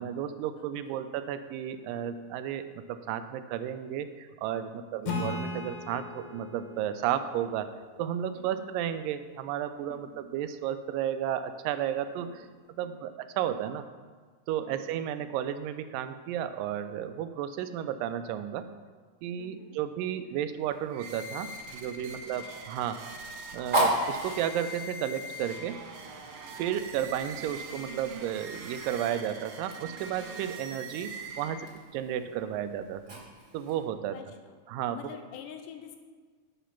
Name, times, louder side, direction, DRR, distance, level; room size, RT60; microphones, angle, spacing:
voice 1, 0.0-7.7 8.0-12.5 12.8-13.8 14.5-18.7 19.2-23.0 23.5-25.8 26.6-33.2 33.5-34.2 34.7-35.0, right 10 dB, 90° right, 11 dB, 2.2 m, -33 dB
voice 2, 0.5-1.0 4.7-4.8 8.3-8.8 9.9-10.3 12.0-12.5 12.8-13.1 14.6-14.9 19.4-19.8 22.2-22.3 26.8-27.1 34.1-34.5 34.9-36.0, left 8 dB, 85° left, 5 dB, 2.4 m, -48 dB
Acoustic guitar / Strum, 5.1-8.5, left 3 dB, 70° left, 2.0 m, -38 dB
Fire, 20.6-33.9, right 1 dB, 55° right, 0.5 m, -37 dB
sound 1, 20.9-32.0, right 2 dB, 75° right, 1.5 m, -43 dB
10.0 x 4.9 x 5.7 m, 1.5 s
omnidirectional pair, 3.8 m